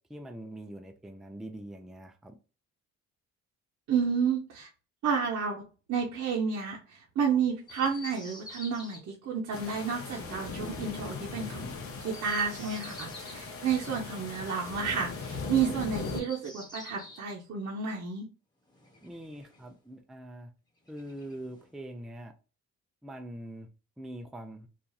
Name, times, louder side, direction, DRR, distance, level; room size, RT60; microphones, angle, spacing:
voice 1, 0.1-2.4 19.0-20.5 20.9-22.3 23.0-23.7 24.0-24.7, right 1 dB, ahead, 0.4 m, -43 dB
voice 2, 3.9-4.7 5.0-11.7 12.0-18.3, right 6 dB, 60° right, 0.7 m, -31 dB
Chirp tweet, 7.6-9.0 12.0-13.4 15.8-17.3 18.7-19.8 20.8-21.8, left 2 dB, 15° left, 1.0 m, -48 dB
sound 1, 9.5-16.2, left 4 dB, 45° left, 0.8 m, -39 dB
2.8 x 2.4 x 2.3 m
cardioid pair, 90°, 30 cm